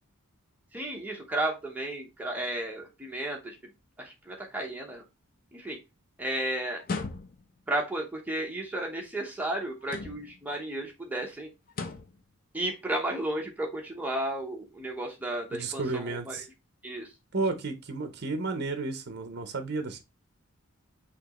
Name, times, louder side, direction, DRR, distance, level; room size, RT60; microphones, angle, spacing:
voice 1, 0.7-3.6 4.0-5.0 5.5-5.8 6.2-6.8 7.7-11.5 12.5-16.4 16.8-17.1, right 1 dB, 5° right, 0.8 m, -33 dB
sound 1, 6.8-7.6 9.8-10.5 11.7-12.2, left 4 dB, 40° left, 0.5 m, -37 dB
voice 2, 15.5-16.5 17.3-20.0, right 3 dB, 50° right, 0.6 m, -32 dB
6.0 x 2.9 x 2.9 m
head